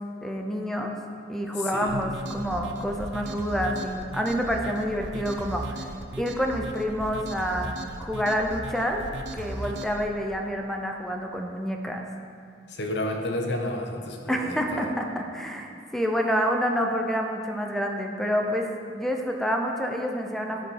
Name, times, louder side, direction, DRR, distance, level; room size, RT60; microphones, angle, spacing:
voice 1, 0.2-0.9 1.3-5.9 6.2-9.0 9.3-12.0 14.3-18.7 19.0-20.7, equal, ahead, 2 dB, 0.6 m, -28 dB
voice 2, 1.6-2.1 12.7-14.9, left 1 dB, 75° left, 3 dB, 1.0 m, -31 dB
sound 1, 1.9-10.0, right 2 dB, 80° right, 0.6 m, -37 dB
11.5 x 4.9 x 4.7 m, 2.3 s
head